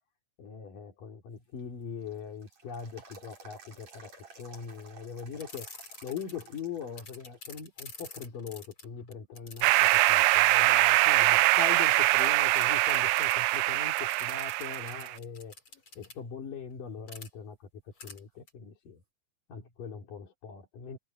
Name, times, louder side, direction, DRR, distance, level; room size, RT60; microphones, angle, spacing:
voice 1, 0.4-4.1 4.4-5.7 6.0-15.5 16.0-19.0 19.5-21.0, left 6 dB, 70° left, 5.0 m, -41 dB
sound 1, 1.4-7.5 7.8-7.9 8.7-9.2 9.7-9.8 10.3-11.5 11.8-11.9 15.3-15.4 18.3-18.4, right 4 dB, 50° right, 7.1 m, -54 dB
sound 2, 5.4-6.6 7.0-10.6 11.7-11.9 12.2-12.3 12.6-13.6 14.0-16.1 17.1-17.3 18.0-18.2 18.5-18.6, left 3 dB, 40° left, 7.0 m, -47 dB
sound 3, 9.6-15.2, right 19 dB, 80° right, 2.0 m, -23 dB
open air
omnidirectional pair, 3.9 m